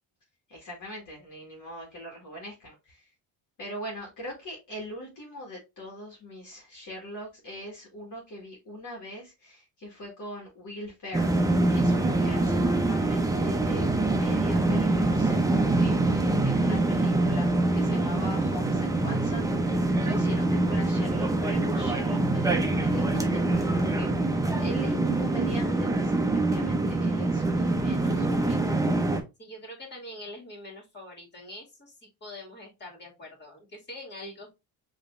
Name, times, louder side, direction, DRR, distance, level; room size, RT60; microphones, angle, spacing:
voice 1, 0.5-3.1 3.6-24.3 24.6-28.6, equal, 45° left, 1.8 m, -42 dB
sound 1, 11.1-29.2, right 2 dB, 10° right, 0.7 m, -25 dB
voice 2, 29.4-34.5, left 1 dB, 25° left, 2.2 m, -44 dB
5.1 x 3.2 x 2.5 m
cardioid pair, 105°, 40 cm